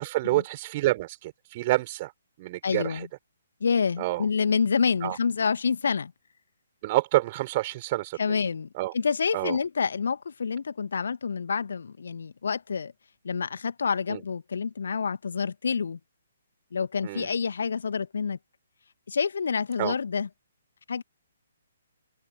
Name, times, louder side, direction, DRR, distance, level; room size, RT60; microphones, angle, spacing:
voice 1, 0.0-2.1 2.4-2.9 4.0-4.2 5.0-5.2 6.8-8.2 8.8-8.9 9.3-9.6 14.1-14.2 17.0-17.3 19.8-19.9, right 18 dB, 30° right, 4.8 m, -27 dB
voice 2, 2.6-3.1 3.6-6.1 8.2-12.9 13.2-16.0 16.7-18.4 19.1-20.3 20.9-21.0, left 5 dB, 60° left, 1.8 m, -28 dB
figure-of-eight pair, 130°, 0 cm